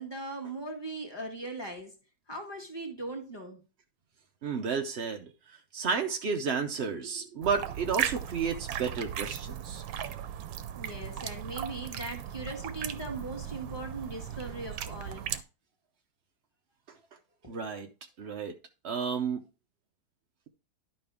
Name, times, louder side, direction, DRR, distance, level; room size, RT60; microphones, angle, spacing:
voice 1, 0.0-1.9 2.3-3.6 10.7-15.3 17.4-17.6, right 2 dB, 15° left, 1.6 m, -39 dB
voice 2, 4.4-5.3 5.7-9.8 17.5-17.9 18.2-18.5 18.8-19.4, right 5 dB, 75° right, 0.6 m, -32 dB
sound 1, 7.4-15.4, right 10 dB, 90° right, 1.5 m, -37 dB
11.0 x 5.3 x 3.5 m
omnidirectional pair, 2.1 m